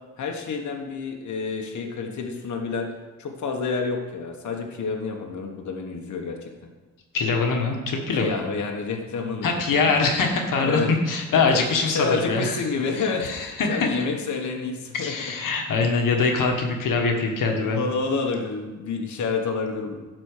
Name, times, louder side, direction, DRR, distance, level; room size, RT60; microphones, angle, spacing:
voice 1, 0.2-2.9 3.2-6.5 8.2-9.5 9.7-9.9 10.6-10.9 11.3-15.3 17.6-20.0, left 4 dB, 65° left, 2 dB, 1.3 m, -29 dB
voice 2, 7.1-8.4 9.4-12.6 13.0-13.9 14.9-17.8, left 4 dB, 85° left, 2 dB, 1.4 m, -23 dB
11.0 x 4.4 x 6.6 m, 1.2 s
cardioid pair, 100°, 32 cm